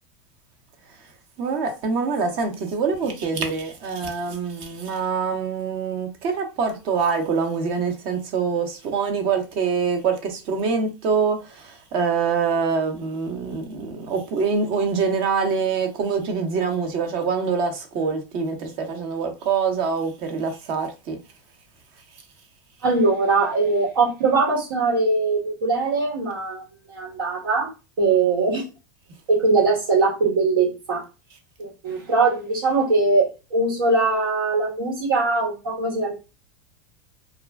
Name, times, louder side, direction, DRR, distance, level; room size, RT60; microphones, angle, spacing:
voice 1, 1.4-21.2, right 5 dB, 50° right, 0.8 m, -25 dB
voice 2, 22.8-26.6 26.9-27.7 28.0-28.6 29.3-31.0 31.6-36.1, right 3 dB, 85° right, 1.3 m, -21 dB
2.4 x 2.1 x 3.2 m
hypercardioid pair, 115°, 11 cm